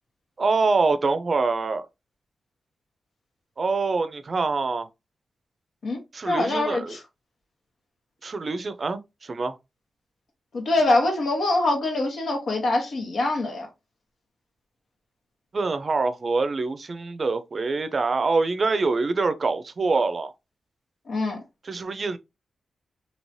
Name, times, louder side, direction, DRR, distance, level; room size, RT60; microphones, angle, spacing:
voice 1, 0.4-1.8 3.6-4.9 6.1-7.0 8.2-9.6 15.5-20.3 21.6-22.2, right 3 dB, 45° right, 0.5 m, -25 dB
voice 2, 6.3-7.0 10.5-13.7 21.1-21.4, left 2 dB, 80° left, 1.2 m, -24 dB
3.1 x 2.8 x 2.7 m
cardioid pair, 85°, 0 cm